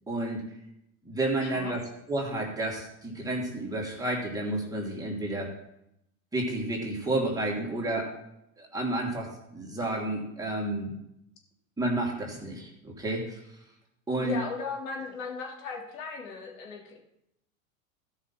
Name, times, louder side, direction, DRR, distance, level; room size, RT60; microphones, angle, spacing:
voice 1, 0.1-0.4 1.0-5.5 6.3-8.1 8.6-10.9 11.8-13.4 14.1-14.4, right 1 dB, 10° right, -3 dB, 2.9 m, -31 dB
voice 2, 1.4-1.7 14.2-17.0, left 4 dB, 70° left, 0 dB, 3.1 m, -37 dB
13.0 x 5.8 x 6.1 m, 0.80 s
hypercardioid pair, 110°, 41 cm